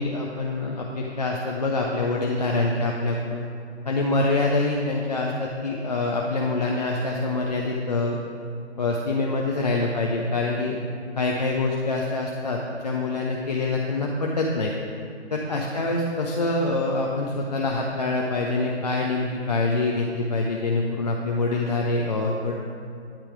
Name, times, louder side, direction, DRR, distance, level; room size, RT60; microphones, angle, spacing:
voice 1, 0.0-3.5 3.8-8.2 8.8-10.8 11.2-14.7 15.3-22.5, left 2 dB, 40° left, -1 dB, 0.5 m, -25 dB
9.1 x 4.4 x 4.8 m, 2.4 s
hypercardioid pair, 155°, 34 cm